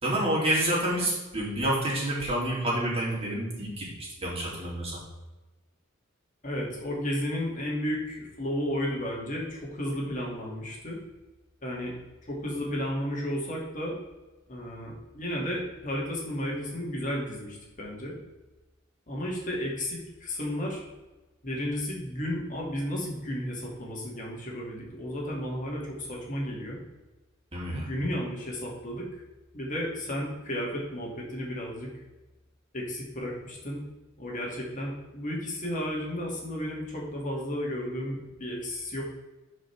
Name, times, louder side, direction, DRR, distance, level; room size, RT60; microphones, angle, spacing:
voice 1, 0.0-5.0 27.5-27.9, right 1 dB, 30° right, -5 dB, 3.2 m, -28 dB
voice 2, 6.4-11.0 11.6-11.9 12.2-14.0 14.5-18.1 19.1-20.8 21.4-26.8 27.7-29.1 29.5-31.9 32.7-33.8 34.2-39.0, equal, 40° left, -3 dB, 2.5 m, -33 dB
12.0 x 5.3 x 3.6 m, 1.1 s
head